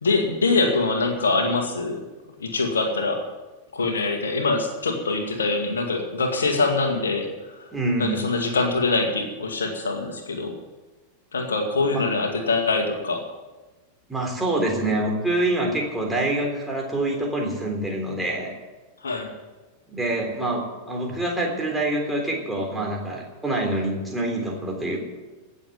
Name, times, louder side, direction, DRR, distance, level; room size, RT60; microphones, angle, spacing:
voice 1, 0.0-2.0 2.4-3.2 3.7-7.7 8.0-10.6 11.3-13.3 19.0-19.3, left 3 dB, 70° left, 4 dB, 2.1 m, -24 dB
voice 2, 7.7-8.2 11.9-12.0 14.1-18.5 19.9-25.0, right 1 dB, 5° right, 0 dB, 3.5 m, -26 dB
17.5 x 7.2 x 9.2 m, 1.2 s
figure-of-eight pair, 90°, 0 cm